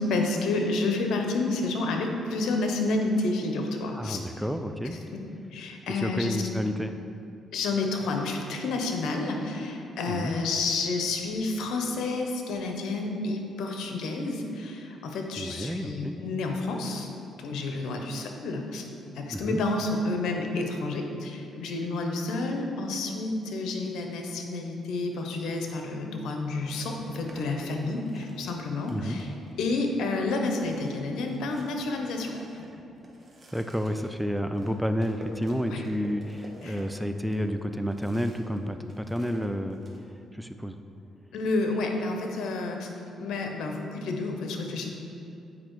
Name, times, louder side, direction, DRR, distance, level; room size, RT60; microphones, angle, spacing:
voice 1, 0.0-4.2 5.1-5.2 5.5-6.4 7.5-17.1 17.4-18.8 19.1-29.3 29.6-32.4 35.7-35.8 36.6-36.8 41.3-42.9 43.2-44.9, left 3 dB, 80° left, 3 dB, 0.8 m, -30 dB
voice 2, 4.0-5.0 5.9-6.9 10.1-10.3 15.4-16.2 19.3-19.6 28.9-29.2 33.5-39.8 40.3-40.8, equal, ahead, 7 dB, 0.3 m, -30 dB
sound 1, 25.8-25.9 26.7-29.7 30.1-30.2 30.4-38.6 38.8-40.0, right 1 dB, 30° right, 1.2 m, -50 dB
8.6 x 4.9 x 3.1 m, 2.6 s
cardioid pair, 90°, 0 cm